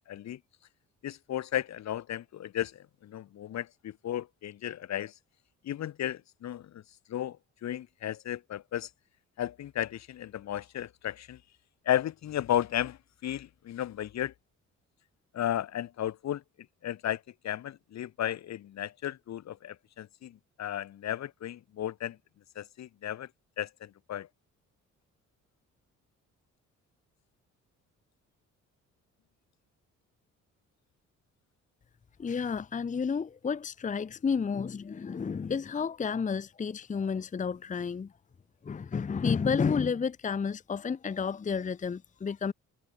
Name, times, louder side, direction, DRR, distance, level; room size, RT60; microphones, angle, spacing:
voice 1, 0.1-0.4 1.0-5.1 5.6-6.8 7.1-7.4 7.6-8.9 9.4-11.4 11.8-14.3 15.3-16.4 16.8-22.2 22.5-23.3 23.6-24.3, left 11 dB, 65° left, 1.3 m, -34 dB
voice 2, 32.2-38.1 38.6-42.5, left 6 dB, 25° left, 0.7 m, -31 dB
cardioid pair, 90°, 30 cm